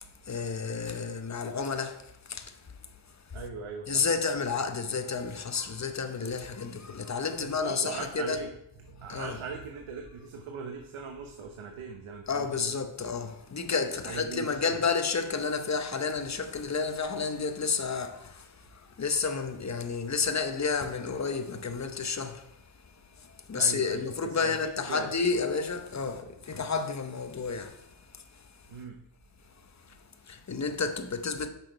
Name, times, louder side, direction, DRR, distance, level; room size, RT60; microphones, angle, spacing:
voice 1, 0.0-2.6 3.9-8.4 9.1-9.4 12.3-22.5 23.2-27.9 28.1-28.2 30.3-31.5, left 5 dB, 35° left, 0.9 m, -31 dB
voice 2, 3.3-4.1 7.4-8.5 8.9-12.8 14.0-14.8 23.5-25.2 28.7-29.0, right 5 dB, 80° right, 0.9 m, -40 dB
8.1 x 6.0 x 4.5 m
wide cardioid pair, 95°, 48 cm